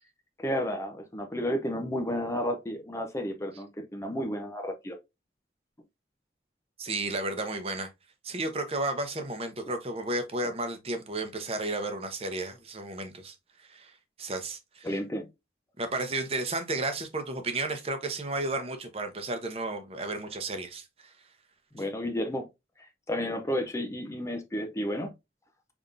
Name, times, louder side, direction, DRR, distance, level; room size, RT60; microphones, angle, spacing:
voice 1, 0.4-5.0 14.8-15.3 21.7-22.5 23.1-25.1, equal, 15° left, 0.5 m, -32 dB
voice 2, 6.8-7.9 8.2-15.0 15.8-21.1, right 2 dB, 35° right, 0.8 m, -33 dB
5.2 x 3.5 x 2.5 m
head